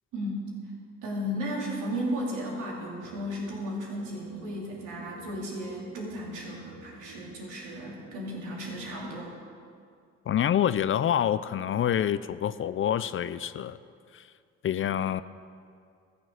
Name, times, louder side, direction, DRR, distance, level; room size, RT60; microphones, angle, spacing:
voice 1, 0.1-0.5 1.0-9.4, equal, 85° right, -3 dB, 2.7 m, -34 dB
sound 1, 1.8-9.1, right 4 dB, 65° right, 1.1 m, -53 dB
voice 2, 10.3-13.8 14.1-14.2 14.6-15.2, left 10 dB, 45° left, 15 dB, 0.4 m, -27 dB
14.0 x 7.0 x 6.5 m, 2.3 s
cardioid pair, 90°, 30 cm